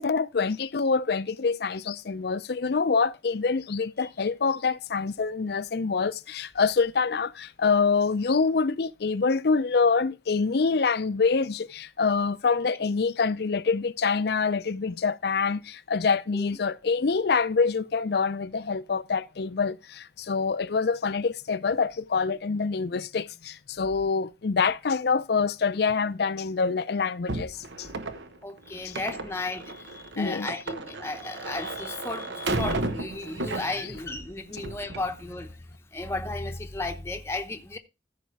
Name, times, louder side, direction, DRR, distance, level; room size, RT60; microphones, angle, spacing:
voice 1, 0.0-27.9 28.8-29.0 30.2-30.5, left 5 dB, 60° left, 0.5 m, -26 dB
sound 1, 27.3-34.1 34.5-35.1, right 2 dB, 85° right, 1.1 m, -33 dB
voice 2, 28.4-37.8, left 2 dB, 15° left, 0.8 m, -34 dB
14.5 x 5.0 x 4.7 m
head